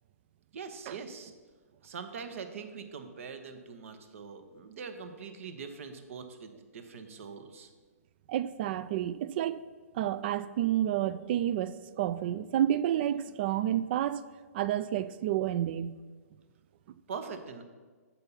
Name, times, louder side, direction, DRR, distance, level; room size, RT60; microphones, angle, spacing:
voice 1, 0.5-1.3 1.8-7.7 17.1-17.6, right 5 dB, 55° right, 0.9 m, -43 dB
voice 2, 8.3-9.6 9.9-14.2 14.5-16.0, right 11 dB, 40° right, 0.4 m, -30 dB
7.1 x 5.4 x 5.5 m
hypercardioid pair, 130°, 8 cm